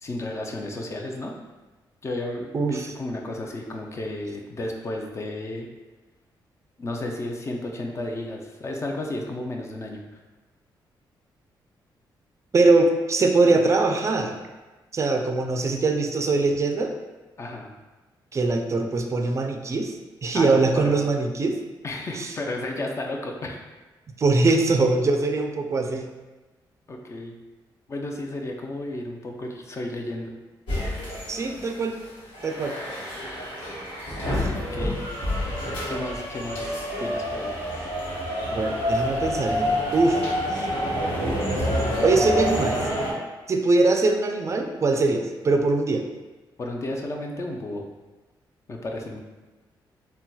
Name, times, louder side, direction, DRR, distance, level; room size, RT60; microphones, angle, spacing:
voice 1, 0.0-1.3 2.0-5.7 6.8-10.2 17.4-17.7 20.3-21.1 21.8-23.6 26.9-27.3 27.9-30.3 34.5-35.0 35.9-37.6 46.6-47.8 48.7-49.2, left 1 dB, 35° left, 1 dB, 0.5 m, -33 dB
voice 2, 2.5-2.9 12.5-14.3 14.9-16.9 18.3-19.9 20.2-21.6 22.2-22.3 24.2-26.1 31.3-32.0 32.4-32.7 34.4-34.5 38.5-40.2 40.5-40.7 42.0-42.8 43.5-46.0, right 3 dB, 35° right, 4 dB, 0.3 m, -22 dB
sound 1, 30.7-32.1 32.3-43.1, equal, 85° left, 1.1 m, -28 dB
3.9 x 2.2 x 2.3 m, 1.2 s
cardioid pair, 90°, 8 cm